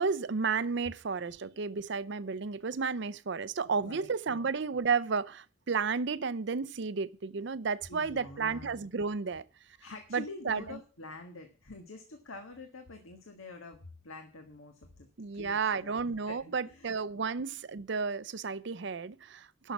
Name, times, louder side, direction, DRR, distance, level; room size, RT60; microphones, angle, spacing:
voice 1, 0.0-9.4 10.1-10.8 15.2-19.7, right 5 dB, 60° right, 0.5 m, -32 dB
voice 2, 3.6-4.1 7.9-8.8 9.8-15.1 15.3-17.3, left 2 dB, 90° left, 1.6 m, -47 dB
11.0 x 6.5 x 7.2 m
head